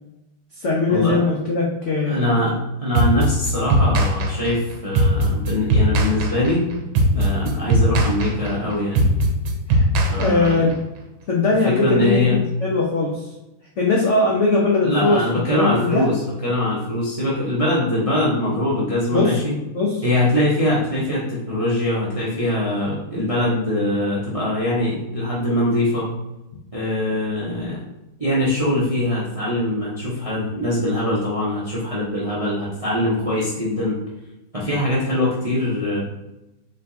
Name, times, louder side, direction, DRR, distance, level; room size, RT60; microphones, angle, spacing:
voice 1, 0.6-2.4 9.7-9.9 10.2-10.7 11.3-13.2 13.8-16.0 19.1-19.3 19.7-19.9, left 3 dB, 70° left, -3 dB, 0.7 m, -20 dB
voice 2, 2.1-6.6 7.1-9.1 10.1-10.7 11.7-12.4 14.8-19.5 20.0-26.1 26.7-27.8 28.2-34.0 34.5-36.0, left 1 dB, 35° right, -7 dB, 0.5 m, -22 dB
sound 1, 2.9-10.8, equal, 75° right, 1.3 m, -19 dB
4.3 x 3.9 x 2.7 m, 0.95 s
omnidirectional pair, 2.2 m